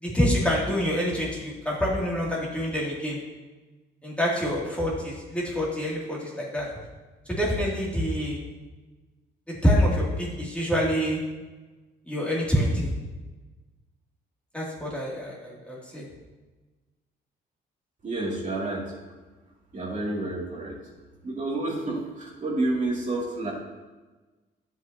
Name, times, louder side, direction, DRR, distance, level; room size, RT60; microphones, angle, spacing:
voice 1, 0.0-3.2 4.0-6.7 7.3-8.4 9.5-11.2 12.1-12.9 14.5-16.1, equal, 5° left, -5 dB, 2.6 m, -26 dB
voice 2, 18.0-18.9 19.7-20.8 21.2-23.5, right 2 dB, 40° right, -4 dB, 2.6 m, -29 dB
11.0 x 8.1 x 2.8 m, 1.2 s
cardioid pair, 90°, 20 cm